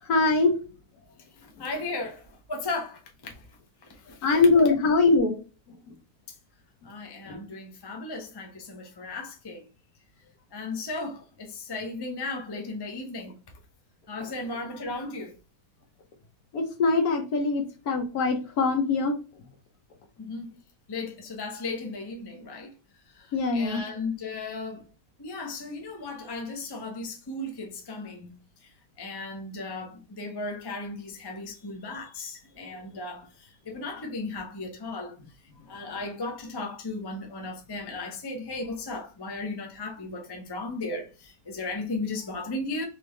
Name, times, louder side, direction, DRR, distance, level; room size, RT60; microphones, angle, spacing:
voice 1, 0.1-0.6 4.2-5.4 7.3-7.4 16.5-19.1 23.3-23.8, left 3 dB, 65° left, 1.4 m, -22 dB
voice 2, 1.4-3.5 3.8-4.3 6.8-9.7 10.5-13.4 14.1-15.4 20.2-20.6 20.9-22.8 23.1-24.9 25.2-35.2 35.7-42.9, left 3 dB, 20° left, 0.6 m, -36 dB
4.4 x 3.0 x 3.2 m
omnidirectional pair, 1.9 m